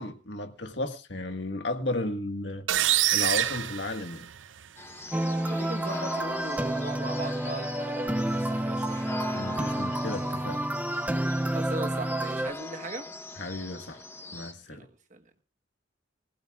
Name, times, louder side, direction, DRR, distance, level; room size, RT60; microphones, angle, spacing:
voice 1, 0.0-4.3 9.3-10.6 13.4-14.0 14.3-14.8, left 2 dB, 65° left, 1.7 m, -34 dB
sound 1, 2.7-4.6, right 13 dB, 80° right, 0.6 m, -26 dB
sound 2, 4.8-14.5, left 2 dB, 15° left, 1.0 m, -41 dB
sound 3, 5.1-12.5, right 1 dB, 10° right, 0.6 m, -29 dB
voice 2, 5.5-9.1 11.5-13.1 14.7-14.8 15.1-15.2, right 2 dB, 40° right, 1.4 m, -38 dB
19.5 x 16.0 x 2.4 m
head